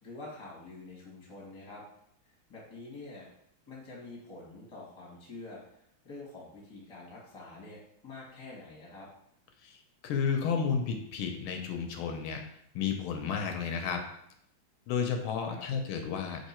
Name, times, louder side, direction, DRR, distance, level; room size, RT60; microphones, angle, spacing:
voice 1, 0.0-1.8 2.5-3.3 3.7-9.1 15.5-15.6, left 2 dB, 15° left, -5 dB, 1.0 m, -47 dB
voice 2, 10.0-12.4 12.7-14.0 14.9-16.5, left 6 dB, 80° left, 4 dB, 1.4 m, -32 dB
3.7 x 3.2 x 4.2 m, 0.74 s
omnidirectional pair, 2.3 m